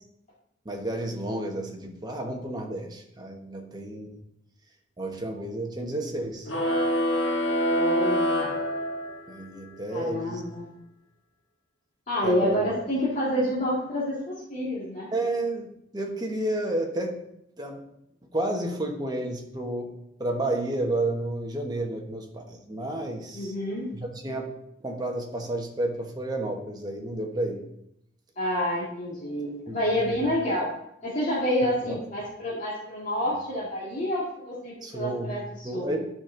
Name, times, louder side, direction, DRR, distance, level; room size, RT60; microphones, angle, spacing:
voice 1, 0.6-4.2 5.0-6.5 9.3-10.4 12.2-12.6 15.1-17.2 17.6-17.8 18.3-19.9 20.2-23.5 23.9-24.5 24.8-27.6 29.7-29.8 30.0-30.2 31.6-32.0 33.3-33.4 34.8-35.4 35.6-36.1, right 1 dB, 20° right, 2 dB, 1.2 m, -31 dB
sound 1, 6.5-9.4, equal, 90° left, 1.3 m, -25 dB
voice 2, 7.7-8.4 9.9-10.7 12.1-15.1 23.3-23.9 28.4-30.7 31.0-35.9, left 1 dB, 40° left, -8 dB, 2.0 m, -28 dB
12.0 x 5.2 x 3.8 m, 0.80 s
head